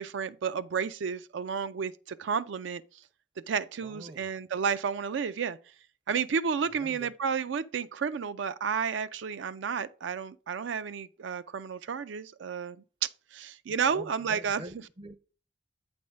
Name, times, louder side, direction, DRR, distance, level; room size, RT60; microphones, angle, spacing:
voice 1, 0.0-2.8 3.5-5.6 6.1-14.6, right 6 dB, 85° right, 0.4 m, -31 dB
voice 2, 3.8-4.3 6.7-7.1 13.7-15.2, right 1 dB, 25° right, 0.4 m, -46 dB
8.5 x 3.5 x 5.2 m
head